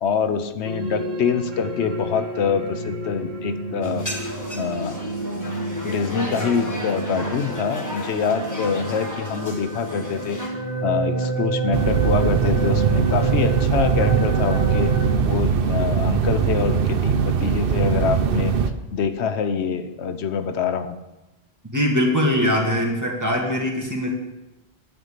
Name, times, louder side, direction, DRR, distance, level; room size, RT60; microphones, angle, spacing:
voice 1, 0.0-4.1 4.6-5.0 5.8-10.4 10.8-14.9 15.3-18.6 18.9-21.0, left 6 dB, 90° left, 10 dB, 1.0 m, -25 dB
sound 1, 0.6-15.1, right 2 dB, 45° right, 1.1 m, -29 dB
sound 2, 3.8-10.5, equal, 15° left, 1.4 m, -34 dB
sound 3, 11.7-18.7, right 7 dB, 60° right, 0.8 m, -21 dB
voice 2, 21.7-24.1, left 1 dB, 15° right, -1 dB, 1.9 m, -21 dB
9.4 x 5.4 x 8.2 m, 1.0 s
omnidirectional pair, 1.1 m